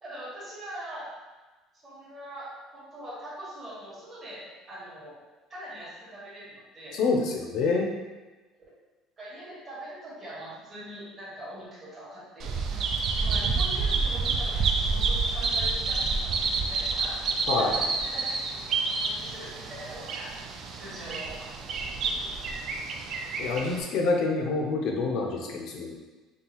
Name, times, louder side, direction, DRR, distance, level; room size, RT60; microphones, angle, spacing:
voice 1, 0.0-1.1 1.8-5.2 5.5-7.0 9.2-12.8 13.1-17.2 17.6-18.4 18.9-20.3 20.7-21.5 22.0-22.8, right 1 dB, 20° right, -8 dB, 1.3 m, -43 dB
voice 2, 6.9-7.9 17.5-17.8 23.4-26.0, left 3 dB, 50° left, 1 dB, 0.6 m, -27 dB
Bird vocalization bird call bird song, 12.4-23.8, right 4 dB, 35° right, 0.3 m, -29 dB
5.4 x 2.3 x 2.9 m, 1.2 s
cardioid pair, 180°, 0 cm